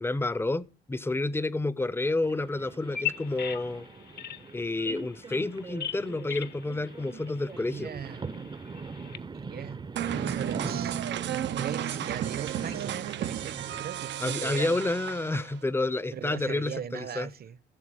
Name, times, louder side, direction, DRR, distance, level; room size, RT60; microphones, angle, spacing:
voice 1, 0.0-3.9 4.5-7.9 14.2-17.3, left 2 dB, 10° left, 0.7 m, -30 dB
sound 1, 2.2-13.9, right 4 dB, 25° right, 0.7 m, -41 dB
Bird vocalization bird call bird song, 2.8-9.2, left 9 dB, 55° left, 1.0 m, -40 dB
voice 2, 7.5-8.2 9.3-11.0 11.6-14.8 16.1-17.6, right 8 dB, 50° right, 1.0 m, -39 dB
sound 2, 10.0-15.6, right 11 dB, 65° right, 0.6 m, -33 dB
15.5 x 7.0 x 4.9 m
cardioid pair, 90°, 20 cm